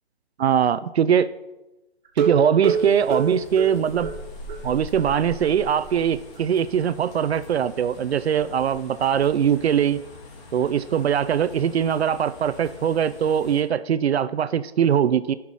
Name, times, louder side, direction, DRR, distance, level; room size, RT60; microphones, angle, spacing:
voice 1, 0.4-1.3 2.2-4.1 4.6-10.0 10.5-15.3, right 8 dB, 75° right, 15 dB, 0.5 m, -21 dB
sound 1, 2.1-4.6 5.0-5.1 5.4-5.5 5.9-6.0, right 5 dB, 45° right, 2.4 m, -27 dB
sound 2, 2.6-13.6, left 1 dB, 25° left, 2.2 m, -43 dB
12.0 x 5.9 x 4.8 m, 1.0 s
hypercardioid pair, 150°, 32 cm